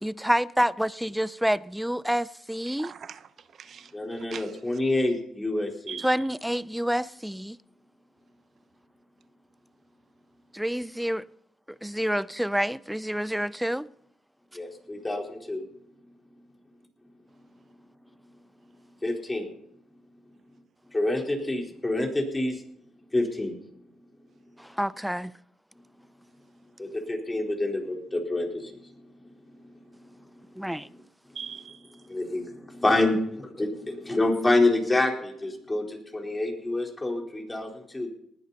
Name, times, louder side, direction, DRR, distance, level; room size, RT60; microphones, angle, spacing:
voice 1, 0.0-2.9 6.0-7.6 10.5-11.3 11.8-13.9 24.6-25.3 30.6-30.9, equal, 5° right, 0.6 m, -28 dB
voice 2, 2.7-3.3 3.6-3.9 4.3-4.6 5.9-6.1 31.3-31.8, right 7 dB, 60° right, 0.9 m, -40 dB
voice 3, 3.9-6.0 14.5-15.6 19.0-19.5 20.9-22.6 23.1-23.6 26.8-28.9 32.1-38.1, left 2 dB, 20° left, 4.3 m, -27 dB
19.5 x 11.5 x 4.2 m
cardioid pair, 70°, 0 cm